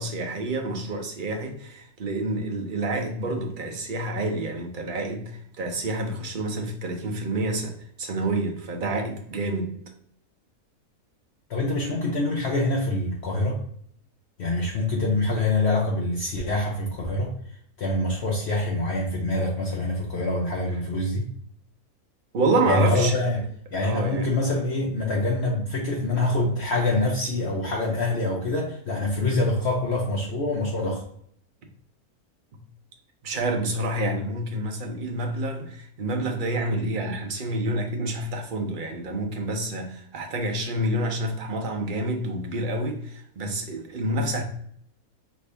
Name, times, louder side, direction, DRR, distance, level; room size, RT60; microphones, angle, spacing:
voice 1, 0.0-9.7 22.3-23.2 23.8-24.3 33.2-44.4, right 2 dB, 45° right, 0.7 m, -28 dB
voice 2, 11.5-13.6 14.4-17.3 17.8-21.3 22.6-23.4 23.7-31.0, left 2 dB, 55° left, 0.9 m, -25 dB
5.2 x 2.7 x 3.3 m
omnidirectional pair, 1.5 m